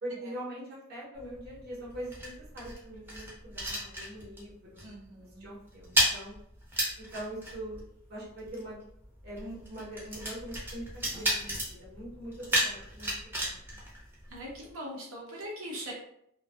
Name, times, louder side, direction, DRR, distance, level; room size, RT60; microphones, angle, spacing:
voice 1, 0.0-4.8 5.4-6.3 7.0-7.8 8.1-8.8 9.2-13.1 13.4-13.5, right 1 dB, 50° right, -5 dB, 0.8 m, -42 dB
sound 1, 1.2-4.5 4.8-5.0 5.3-14.7, right 1 dB, 10° right, 0.5 m, -34 dB
voice 2, 4.8-5.5 14.3-15.9, equal, 80° right, -4 dB, 0.7 m, -41 dB
2.5 x 2.2 x 2.3 m, 0.74 s
head